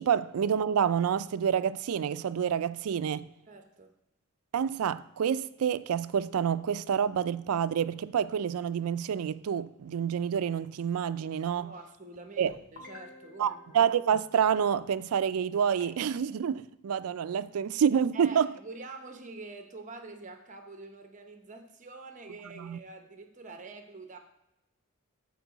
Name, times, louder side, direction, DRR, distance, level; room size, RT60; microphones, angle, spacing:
voice 1, 0.0-3.3 4.5-11.7 12.4-12.5 13.4-18.5 22.6-22.8, right 8 dB, 80° right, 0.4 m, -28 dB
voice 2, 3.5-3.9 11.6-13.8 18.1-24.2, right 3 dB, 35° right, 0.8 m, -46 dB
sound 1, 12.5-14.6 15.8-16.2, left 1 dB, 60° left, 2.0 m, -51 dB
12.5 x 4.5 x 4.0 m
head